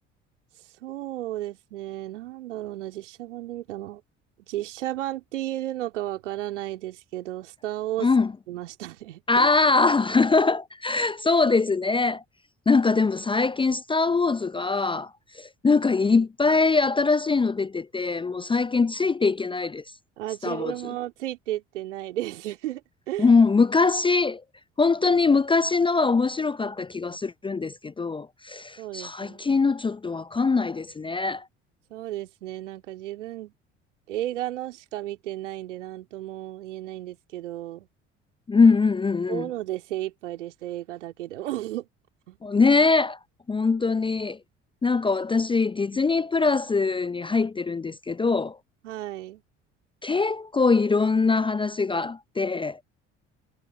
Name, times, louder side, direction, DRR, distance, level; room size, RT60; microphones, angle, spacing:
voice 1, 0.8-4.0 4.5-8.1 8.5-9.5 20.2-23.3 28.8-29.6 31.9-33.5 34.1-37.9 39.3-41.9 42.3-42.4 48.8-49.4, right 14 dB, 75° right, 3.2 m, -33 dB
voice 2, 8.0-8.3 9.3-12.2 12.7-15.1 15.4-19.8 20.4-20.7 23.2-24.4 24.8-31.4 38.5-39.5 42.4-43.2 43.5-44.4 44.8-48.6 50.0-52.8, left 4 dB, 15° left, 0.6 m, -22 dB
figure-of-eight pair, 55°, 36 cm